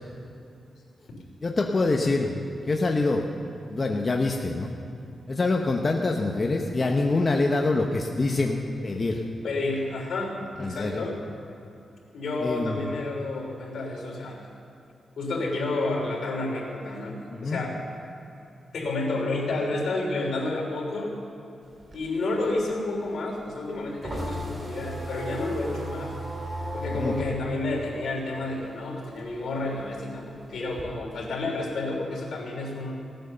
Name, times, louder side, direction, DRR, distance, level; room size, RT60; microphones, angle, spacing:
voice 1, 1.4-2.4 2.7-3.2 3.7-4.7 5.3-9.2 10.6-11.1 12.4-12.8 17.3-17.6 26.9-27.1, left 3 dB, 30° left, 1 dB, 0.9 m, -25 dB
voice 2, 9.4-11.2 12.1-14.4 15.2-17.8 18.7-21.1 21.9-26.1 26.7-32.9, left 2 dB, 75° left, -1 dB, 3.2 m, -30 dB
sound 1, 21.6-28.7 29.1-30.8, equal, 30° right, 2.7 m, -35 dB
16.5 x 9.1 x 6.7 m, 2.8 s
wide cardioid pair, 120°, 0 cm